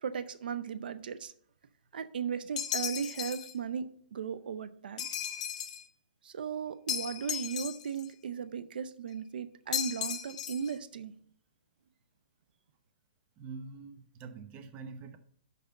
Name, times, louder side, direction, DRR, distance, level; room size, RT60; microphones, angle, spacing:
voice 1, 0.0-1.3 1.9-5.1 6.2-11.1, right 7 dB, 75° right, 13 dB, 0.6 m, -37 dB
sound 1, 2.6-3.5 5.0-5.9 6.9-8.1 9.7-10.7, left 9 dB, 45° left, 0.9 m, -36 dB
voice 2, 13.4-15.2, right 4 dB, 30° right, 8 dB, 0.9 m, -45 dB
6.6 x 5.0 x 6.6 m, 0.63 s
hypercardioid pair, 140°, 5 cm